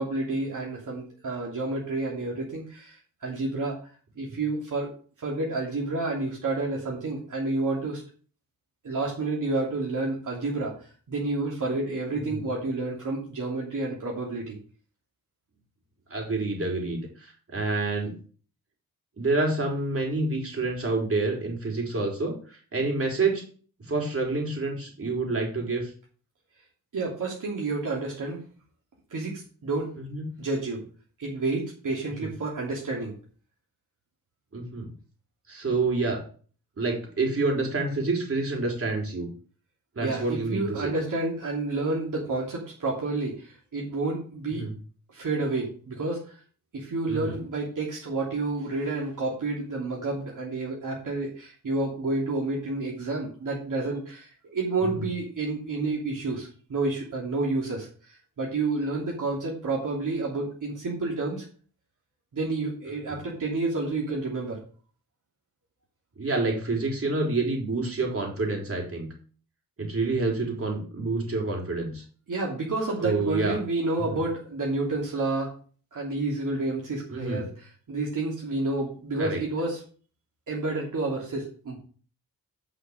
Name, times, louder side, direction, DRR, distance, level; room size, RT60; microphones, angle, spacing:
voice 1, 0.0-3.8 4.2-4.9 5.2-8.0 8.8-14.6 26.9-28.4 29.1-29.9 30.4-30.8 31.2-33.2 40.0-44.7 45.1-46.4 46.7-61.4 62.3-64.6 72.3-75.5 75.9-79.8 80.5-81.8, right 2 dB, 60° right, -3 dB, 3.0 m, -30 dB
voice 2, 16.1-18.1 19.2-23.4 23.9-25.9 30.1-30.3 32.2-32.3 34.5-34.9 35.5-36.2 36.8-39.3 40.0-40.9 44.6-44.7 47.1-47.4 54.8-54.9 63.1-63.2 66.2-69.1 69.8-72.0 73.0-73.6 74.1-74.2 77.1-77.4 79.2-79.4, right 3 dB, 40° right, 0 dB, 4.2 m, -28 dB
10.0 x 5.7 x 6.6 m, 0.41 s
wide cardioid pair, 115°, 36 cm